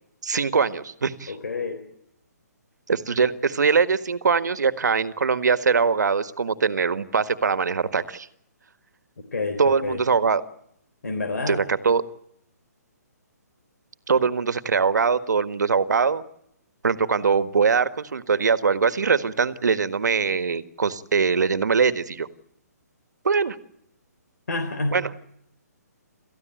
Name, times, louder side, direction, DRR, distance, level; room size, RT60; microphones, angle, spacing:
voice 1, 0.2-1.3 2.9-8.3 9.6-10.4 11.5-12.0 14.1-16.2 16.8-22.3 23.2-23.5 24.9-25.0, right 5 dB, 80° right, 12 dB, 1.6 m, -22 dB
voice 2, 1.3-1.8 9.3-10.0 11.0-11.6 24.5-25.0, left 3 dB, 70° left, 8 dB, 3.7 m, -28 dB
29.0 x 14.5 x 9.2 m, 0.77 s
hypercardioid pair, 175°, 9 cm